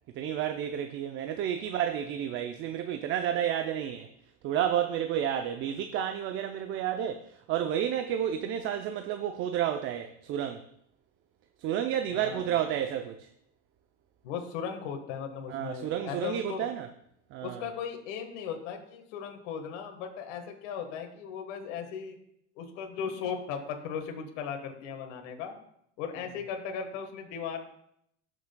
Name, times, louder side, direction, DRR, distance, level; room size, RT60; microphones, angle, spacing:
voice 1, 0.2-4.1 4.4-10.6 11.6-13.3 15.5-16.9 17.3-17.7, right 10 dB, 35° right, 7 dB, 0.5 m, -31 dB
voice 2, 12.1-12.6 14.2-16.7 17.4-22.2 22.5-25.5 26.0-27.7, left 7 dB, 65° left, 4 dB, 1.5 m, -37 dB
17.5 x 6.1 x 2.2 m, 0.73 s
supercardioid pair, 120°, 38 cm